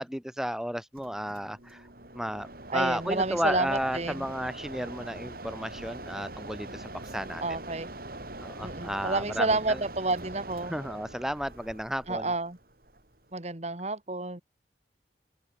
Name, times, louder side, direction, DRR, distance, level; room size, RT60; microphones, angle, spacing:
voice 1, 0.0-1.9 2.1-7.6 8.4-9.8 10.6-12.3, equal, 5° right, 1.4 m, -33 dB
Mechanisms, 0.9-13.3, right 2 dB, 55° right, 6.9 m, -43 dB
voice 2, 2.7-4.3 7.4-7.9 8.6-10.7 12.1-12.6 13.3-14.4, right 2 dB, 35° right, 1.9 m, -30 dB
open air
head